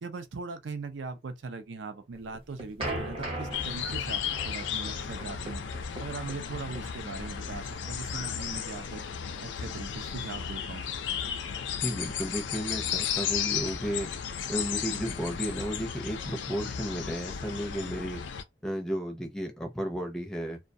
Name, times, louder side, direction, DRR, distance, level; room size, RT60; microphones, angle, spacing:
voice 1, 0.0-5.6 6.0-9.0 9.4-10.9, right 4 dB, 75° right, 0.5 m, -40 dB
sound 1, 2.1-9.0, right 1 dB, 30° right, 0.8 m, -39 dB
sound 2, 3.5-18.4, left 8 dB, 70° left, 0.4 m, -34 dB
voice 2, 11.8-14.1 14.5-18.2 18.6-20.6, equal, 5° left, 0.5 m, -33 dB
2.3 x 2.1 x 2.6 m
head